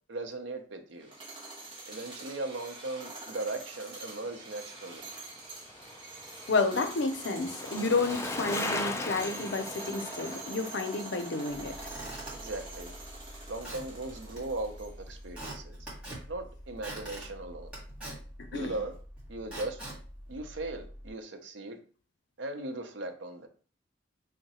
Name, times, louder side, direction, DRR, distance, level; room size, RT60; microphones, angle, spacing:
voice 1, 0.1-1.1 1.9-5.1 12.3-12.9 13.5-15.8 16.3-17.7 18.5-19.0 19.3-19.9 20.3-21.8 22.4-23.5, right 2 dB, 80° right, 5 dB, 0.7 m, -38 dB
sound 1, 1.0-15.1, right 2 dB, 30° right, 1.0 m, -45 dB
Bicycle, 4.7-13.1 13.4-13.5, left 2 dB, 15° left, 0.4 m, -39 dB
voice 2, 6.5-11.7 18.5-18.7, left 3 dB, 70° left, 7 dB, 0.6 m, -30 dB
Squeak / Wood, 11.5-21.1, right 1 dB, 5° right, 1.6 m, -44 dB
3.7 x 2.1 x 4.1 m, 0.40 s
head